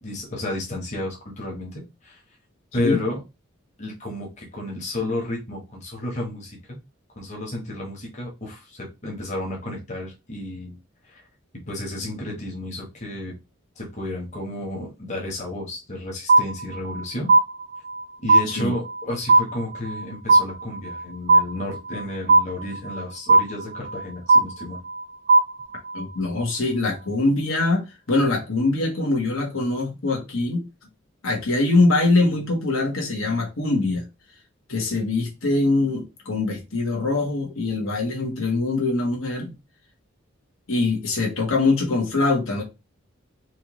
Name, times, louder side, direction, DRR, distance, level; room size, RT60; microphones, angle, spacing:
voice 1, 0.0-2.2 2.7-3.2 3.8-6.8 7.2-10.7 11.1-11.2 11.7-13.3 13.8-17.3 18.2-24.8, left 1 dB, 35° left, 1.2 m, -32 dB
sound 1, 16.3-17.0 17.3-18.0 18.3-19.0 19.3-20.0 20.3-21.0 21.3-22.0 22.3-23.0 23.3-24.0 24.3-25.0 25.3-26.0, right 3 dB, 45° right, 0.5 m, -17 dB
voice 2, 25.9-30.6 31.2-34.0 34.7-39.5 40.7-42.6, left 2 dB, 85° left, 1.5 m, -23 dB
4.6 x 2.6 x 3.1 m
head